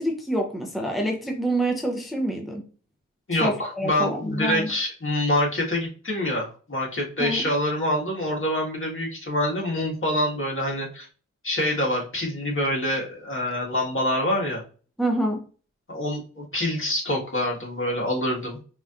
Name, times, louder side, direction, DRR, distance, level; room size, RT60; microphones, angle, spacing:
voice 1, 0.0-2.6 3.3-4.7 7.2-7.5 15.0-15.4, right 1 dB, ahead, 1 dB, 0.8 m, -26 dB
voice 2, 3.3-11.1 11.4-14.6 15.9-18.6, left 1 dB, 40° left, -2 dB, 1.7 m, -26 dB
4.8 x 2.8 x 2.5 m, 0.38 s
cardioid pair, 45°, 31 cm